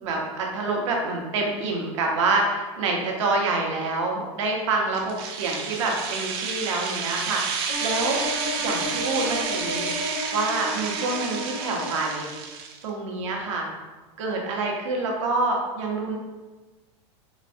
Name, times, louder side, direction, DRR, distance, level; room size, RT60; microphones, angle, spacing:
voice 1, 0.0-8.2 8.6-9.9 10.3-12.3 12.8-13.7 14.2-16.2, right 3 dB, 80° right, 0 dB, 0.9 m, -27 dB
sound 1, 4.9-12.8, right 6 dB, 55° right, 0.5 m, -31 dB
sound 2, 7.7-12.5, left 1 dB, 75° left, 1.0 m, -33 dB
4.0 x 3.1 x 2.6 m, 1.2 s
supercardioid pair, 160°, 15 cm